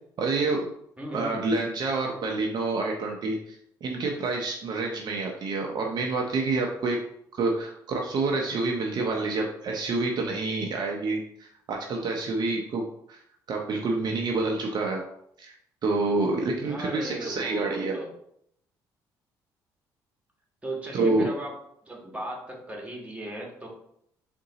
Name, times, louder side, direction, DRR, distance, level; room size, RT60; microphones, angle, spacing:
voice 1, 0.2-0.7 1.1-7.0 7.3-12.8 13.1-13.2 13.5-15.0 15.4-15.5 15.8-18.0 20.9-21.3, right 3 dB, 55° right, 1 dB, 0.6 m, -28 dB
voice 2, 1.0-1.4 16.3-18.1 20.6-21.5 21.9-23.7, right 1 dB, 15° right, -1 dB, 1.5 m, -37 dB
3.8 x 2.6 x 3.9 m, 0.71 s
supercardioid pair, 70°, 9 cm